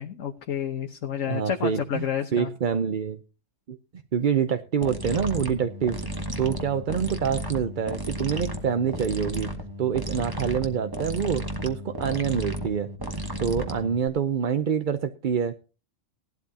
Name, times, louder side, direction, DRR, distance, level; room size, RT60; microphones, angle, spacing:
voice 1, 0.0-2.5, left 8 dB, 85° left, 4 dB, 1.4 m, -30 dB
voice 2, 1.2-3.2 3.7-3.8 4.1-9.5 9.8-12.9 13.2-15.5, right 7 dB, 45° right, 9 dB, 0.7 m, -26 dB
sound 1, 4.8-14.1, equal, 20° right, 1.4 m, -33 dB
17.5 x 12.0 x 2.8 m, 0.33 s
omnidirectional pair, 1.3 m